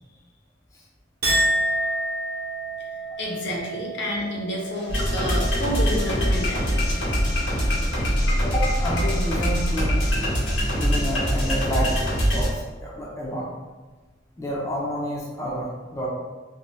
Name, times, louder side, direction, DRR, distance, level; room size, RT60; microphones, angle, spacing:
Chink clink, 1.2-7.8 8.2-8.7, right 1 dB, 50° right, 0.8 m, -30 dB
voice 1, 3.2-6.7, left 1 dB, 65° left, -2 dB, 0.6 m, -29 dB
sound 1, 4.9-12.5, equal, 80° left, 1.2 m, -23 dB
voice 2, 8.4-10.0 10.7-12.0 12.3-13.5 14.4-16.1, equal, 15° left, -4 dB, 0.4 m, -29 dB
2.7 x 2.1 x 3.1 m, 1.3 s
head